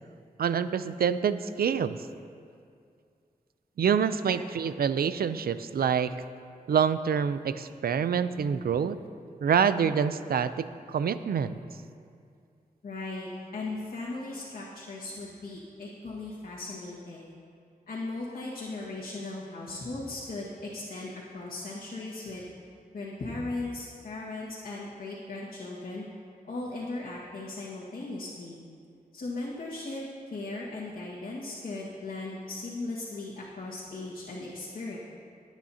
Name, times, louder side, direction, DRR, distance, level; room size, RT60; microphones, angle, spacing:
voice 1, 0.4-2.0 3.8-6.1 6.7-9.0 9.4-11.6, right 7 dB, 85° right, 12 dB, 0.5 m, -26 dB
voice 2, 12.8-13.3 13.5-17.3 17.9-22.5 22.9-26.1 26.5-28.6 29.1-30.0 30.3-35.0, left 2 dB, 70° left, -6 dB, 1.7 m, -37 dB
22.0 x 9.1 x 2.8 m, 2.4 s
wide cardioid pair, 150°, 15 cm